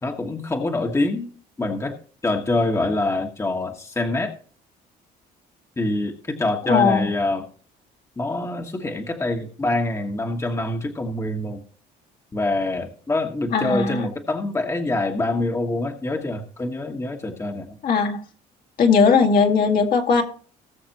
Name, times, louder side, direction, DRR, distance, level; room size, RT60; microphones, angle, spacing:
voice 1, 0.0-1.3 1.6-2.0 2.2-4.3 5.8-7.5 8.2-11.6 12.3-17.8, left 2 dB, 15° left, 3 dB, 1.3 m, -25 dB
voice 2, 6.7-7.1 13.5-14.1 17.8-18.2 18.8-20.2, left 5 dB, 60° left, 3 dB, 2.0 m, -18 dB
19.0 x 6.5 x 3.0 m, 0.42 s
cardioid pair, 110°, 17 cm